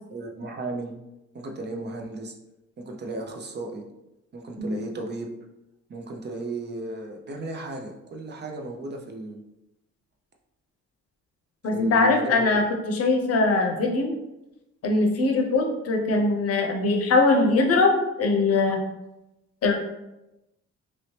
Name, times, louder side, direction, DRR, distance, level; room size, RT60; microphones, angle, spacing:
voice 1, 0.1-0.9 1.3-2.3 2.8-3.8 4.3-5.3 5.9-9.4 11.7-12.7, right 2 dB, 35° right, 2 dB, 0.6 m, -35 dB
voice 2, 11.6-14.1 14.8-18.8 19.6-19.7, left 3 dB, 50° left, 2 dB, 0.7 m, -22 dB
3.0 x 2.7 x 3.2 m, 0.94 s
cardioid pair, 90°, 30 cm